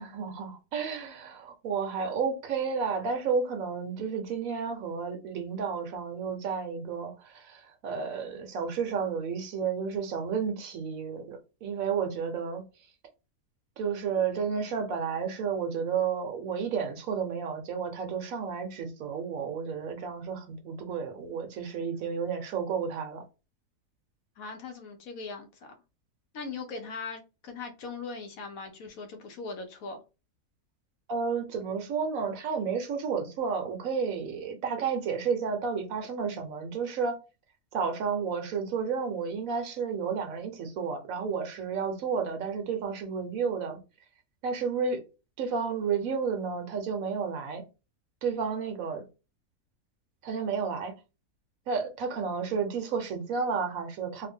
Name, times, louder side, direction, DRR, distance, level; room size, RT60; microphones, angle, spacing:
voice 1, 0.0-12.6 13.8-23.2 31.1-37.2 37.7-43.8 44.4-45.0 45.4-47.6 48.2-49.0 50.2-50.9 51.7-54.3, right 6 dB, 70° right, 1.1 m, -31 dB
voice 2, 24.4-25.7 26.3-30.0, left 4 dB, 70° left, 1.1 m, -40 dB
3.3 x 2.1 x 3.5 m
omnidirectional pair, 1.6 m